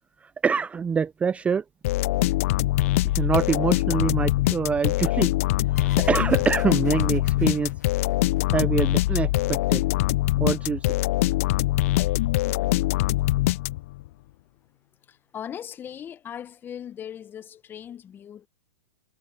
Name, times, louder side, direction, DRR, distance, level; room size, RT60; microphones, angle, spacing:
voice 1, 0.2-1.6 3.1-5.3 5.7-7.7 8.5-9.8 10.4-10.9, right 6 dB, 15° right, 0.5 m, -25 dB
sound 1, 1.8-14.1, left 17 dB, 55° left, 0.6 m, -23 dB
sound 2, 5.8-9.1, left 6 dB, 90° left, 2.4 m, -49 dB
voice 2, 15.0-18.5, left 9 dB, 25° left, 1.1 m, -39 dB
hypercardioid pair, 115°, 9 cm